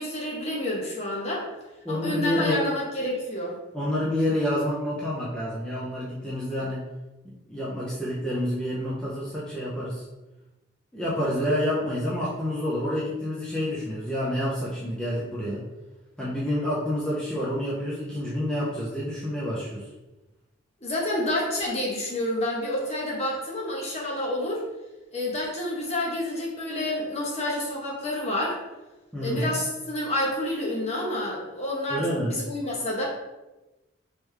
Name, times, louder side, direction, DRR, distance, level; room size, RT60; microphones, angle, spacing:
voice 1, 0.0-1.5 1.9-3.5 20.8-24.6 25.1-28.6 29.2-33.0, left 1 dB, 35° left, -3 dB, 0.9 m, -29 dB
voice 2, 1.8-2.7 3.7-6.9 7.2-10.0 10.9-15.7 16.2-19.9 29.1-29.5 31.9-32.3, equal, 5° left, -8 dB, 0.5 m, -28 dB
3.3 x 3.1 x 3.3 m, 1.1 s
head